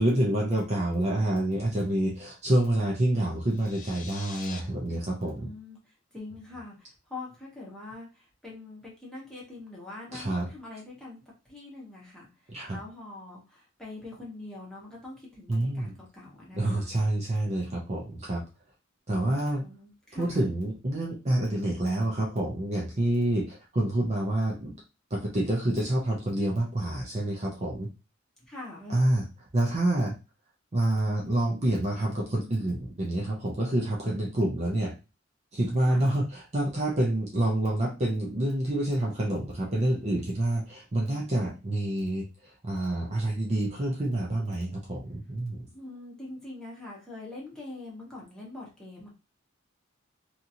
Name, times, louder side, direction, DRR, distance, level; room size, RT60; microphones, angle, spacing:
voice 1, 0.0-5.5 10.1-10.5 12.5-12.8 15.5-16.0 16.5-18.4 19.1-19.6 20.1-24.7 25.1-27.9 28.9-29.2 29.5-30.1 30.7-34.9 35.5-45.6, right 1 dB, 35° right, -3 dB, 0.6 m, -27 dB
sound 1, 3.5-4.6, left 5 dB, 40° left, 0.5 m, -44 dB
voice 2, 5.2-17.0 19.6-20.5 28.4-29.0 35.8-36.2 45.6-49.1, left 2 dB, 5° left, -5 dB, 1.1 m, -44 dB
2.8 x 2.5 x 2.7 m, 0.29 s
head